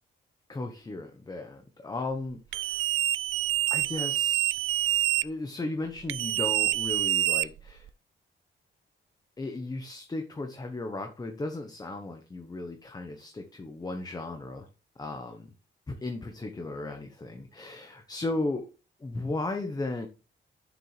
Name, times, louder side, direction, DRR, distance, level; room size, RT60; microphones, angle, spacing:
voice 1, 0.5-2.9 3.7-4.6 5.2-7.9 9.4-14.7 15.0-15.5 15.9-18.7 19.0-20.1, left 2 dB, 20° left, 5 dB, 0.9 m, -35 dB
sound 1, 2.5-5.2 6.1-7.9, right 14 dB, 85° right, 0.4 m, -26 dB
7.7 x 7.0 x 3.2 m, 0.32 s
wide cardioid pair, 140°, 20 cm